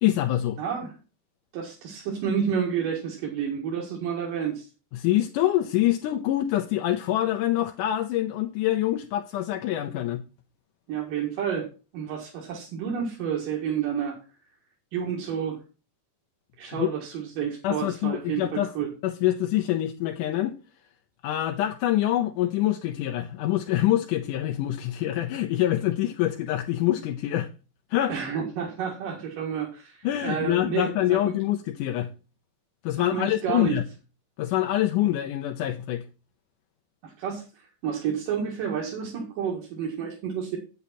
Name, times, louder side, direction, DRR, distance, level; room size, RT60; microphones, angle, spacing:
voice 1, 0.0-0.6 4.9-10.2 16.7-16.9 17.6-18.7 19.0-20.6 21.2-27.5 27.9-28.1 30.0-32.1 32.8-33.8 34.4-36.0, left 13 dB, 75° left, 2.3 m, -25 dB
voice 2, 0.6-0.9 1.5-4.6 10.9-11.7 11.9-14.2 14.9-15.6 16.6-18.9 28.1-31.2 33.1-33.7 37.0-40.6, right 7 dB, 85° right, 3.4 m, -30 dB
9.3 x 8.4 x 4.2 m
omnidirectional pair, 3.8 m